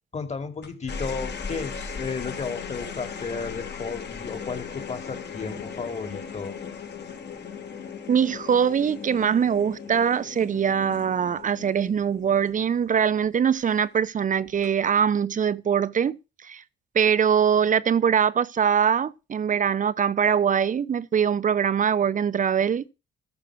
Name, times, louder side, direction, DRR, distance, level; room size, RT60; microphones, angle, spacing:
voice 1, 0.1-6.6, left 5 dB, 35° left, 2.7 m, -33 dB
sound 1, 0.6-13.2 14.5-14.9, left 6 dB, 60° left, 3.9 m, -38 dB
voice 2, 8.1-16.6 16.9-22.8, right 7 dB, 40° right, 0.8 m, -22 dB
14.0 x 5.8 x 6.3 m
cardioid pair, 90°, 20 cm